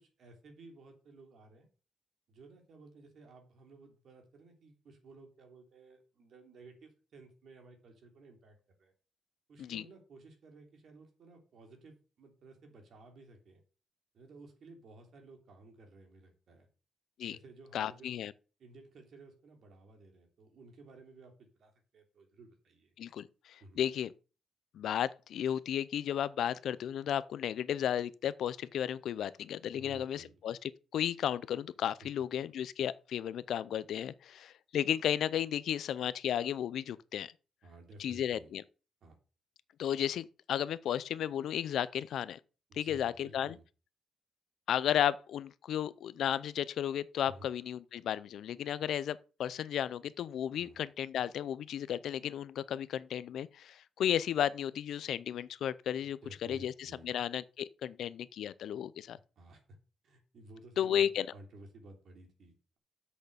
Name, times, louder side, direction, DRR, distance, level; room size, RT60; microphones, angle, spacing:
voice 1, 0.0-1.7 2.3-8.9 9.5-13.6 14.1-16.7 17.3-18.2 18.6-22.9 23.6-23.8 29.7-30.4 32.0-32.1 37.6-38.5 39.0-39.2 42.7-43.6 47.2-47.5 50.6-50.8 56.2-57.1 59.1-59.6 60.0-62.8, right 2 dB, 50° right, 3.1 m, -55 dB
voice 2, 17.7-18.3 23.0-24.1 24.7-37.3 38.0-38.6 39.8-42.4 42.7-43.5 44.7-59.2 60.8-61.3, left 10 dB, 65° left, 0.5 m, -34 dB
7.9 x 6.6 x 6.7 m
cardioid pair, 175°, 0 cm